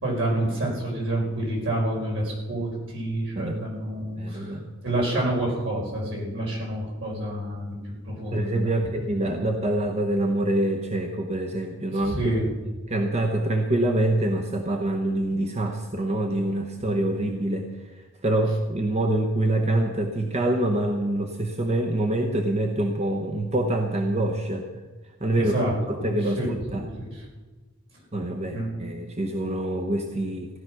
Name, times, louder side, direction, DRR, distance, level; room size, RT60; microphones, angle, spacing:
voice 1, 0.0-7.8 8.1-8.7 12.0-12.5 25.3-26.0 26.4-27.2 28.5-28.7, right 1 dB, 65° right, -3 dB, 5.0 m, -28 dB
voice 2, 4.2-4.7 8.3-12.2 12.9-24.7 25.2-25.5 25.9-26.9 28.1-30.5, right 1 dB, 35° right, 3 dB, 1.0 m, -25 dB
15.5 x 11.0 x 6.1 m, 1.3 s
head